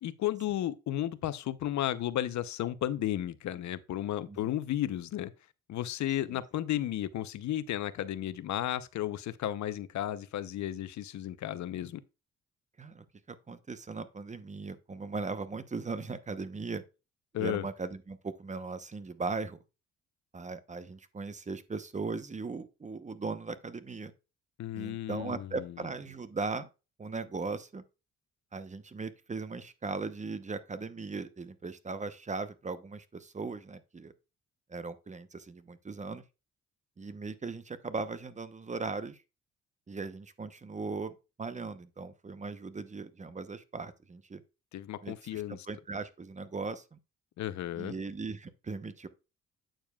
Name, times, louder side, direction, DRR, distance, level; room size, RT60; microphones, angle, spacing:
voice 1, 0.0-5.3 5.7-12.0 17.3-17.7 24.6-25.7 44.7-45.7 47.4-47.9, left 12 dB, 70° left, 0.7 m, -33 dB
voice 2, 12.8-16.8 17.4-19.6 20.3-24.1 24.7-26.7 27.0-27.8 28.5-34.1 34.7-36.2 37.0-39.2 39.9-44.4 45.0-47.0 47.8-49.1, right 4 dB, 25° right, 0.8 m, -38 dB
8.9 x 7.0 x 2.3 m
cardioid pair, 90°, 30 cm